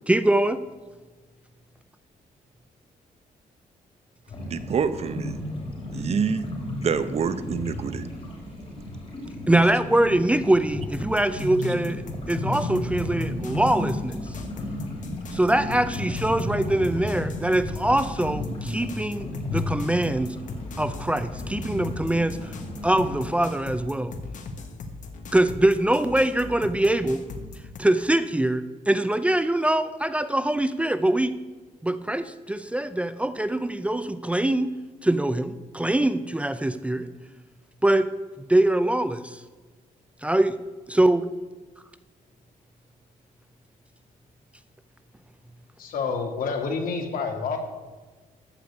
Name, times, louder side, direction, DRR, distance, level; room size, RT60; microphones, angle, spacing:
voice 1, 0.1-0.6 9.5-14.2 15.3-20.4 20.8-22.5 22.8-24.2 25.3-27.2 27.8-31.4 31.8-34.7 35.0-37.1 37.8-38.1 38.4-39.4 40.2-40.6 40.9-41.2, right 1 dB, 10° right, 12 dB, 0.5 m, -23 dB
sound 1, 4.3-23.2, left 1 dB, 45° left, 3.8 m, -33 dB
voice 2, 4.5-5.4 5.9-6.5 6.8-8.1 9.5-9.6, right 6 dB, 50° right, 12 dB, 0.8 m, -27 dB
sound 2, 10.9-27.8, left 3 dB, 65° left, 1.4 m, -39 dB
voice 3, 45.8-47.6, left 5 dB, 80° left, 3 dB, 2.1 m, -28 dB
14.0 x 5.1 x 8.3 m, 1.3 s
cardioid pair, 145°, 14 cm